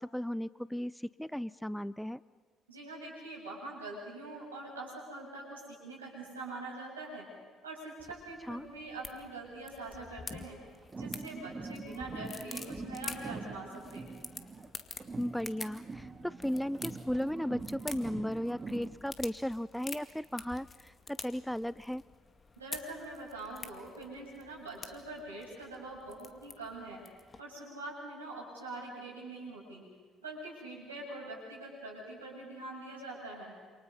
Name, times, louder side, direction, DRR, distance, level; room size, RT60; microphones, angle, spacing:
voice 1, 0.0-2.2 8.5-8.7 15.2-22.0, equal, 5° left, 18 dB, 0.6 m, -36 dB
voice 2, 2.7-7.3 7.6-10.6 11.0-14.1 22.6-27.0 27.4-29.9 30.2-33.6, right 2 dB, 90° right, -3 dB, 7.6 m, -44 dB
sound 1, 8.0-27.4, left 4 dB, 30° left, 2.2 m, -48 dB
sound 2, 10.8-14.7 15.0-19.0, right 3 dB, 30° right, 3.2 m, -43 dB
28.0 x 28.0 x 5.7 m, 1.5 s
hypercardioid pair, 50°, 0 cm